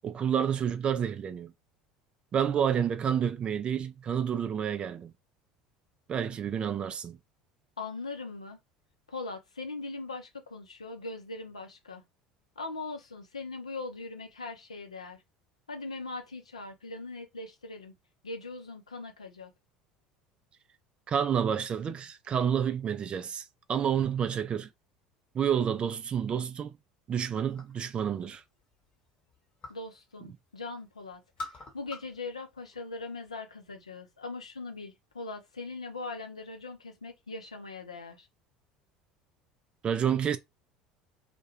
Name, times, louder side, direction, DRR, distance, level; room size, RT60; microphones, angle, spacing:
voice 1, 0.0-1.5 2.3-5.1 6.1-7.2 21.1-24.7 25.3-26.7 27.1-28.4 39.8-40.4, right 8 dB, 30° right, 0.3 m, -29 dB
voice 2, 7.8-8.6 9.1-12.0 12.6-15.2 15.7-17.9 18.2-19.5 29.7-31.2 31.7-38.3, left 3 dB, 80° left, 0.5 m, -40 dB
sound 1, 27.3-27.9 28.3-29.9 30.2-30.8 31.1-32.2 32.5-33.3, left 2 dB, 35° left, 0.9 m, -45 dB
2.3 x 2.2 x 2.9 m
figure-of-eight pair, 65°, 3 cm